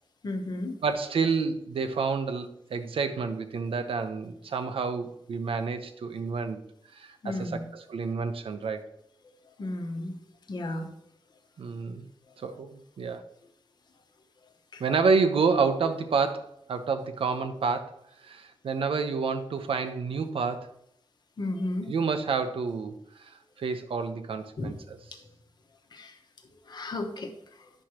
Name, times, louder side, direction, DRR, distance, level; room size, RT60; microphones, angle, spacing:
voice 1, 0.2-0.7 7.2-7.6 9.6-10.2 10.5-10.9 12.3-12.5 14.7-14.8 21.4-21.9 24.6-24.8 25.2-25.3 25.9-26.2 26.6-27.7, left 2 dB, 50° left, 5 dB, 1.0 m, -34 dB
voice 2, 0.8-6.6 6.9-8.9 11.6-12.0 12.4-13.2 14.8-17.9 18.2-20.7 21.8-22.9 23.2-23.3 23.6-25.0, right 5 dB, 90° right, 8 dB, 0.8 m, -29 dB
9.9 x 6.3 x 2.9 m, 0.73 s
wide cardioid pair, 165°, 9 cm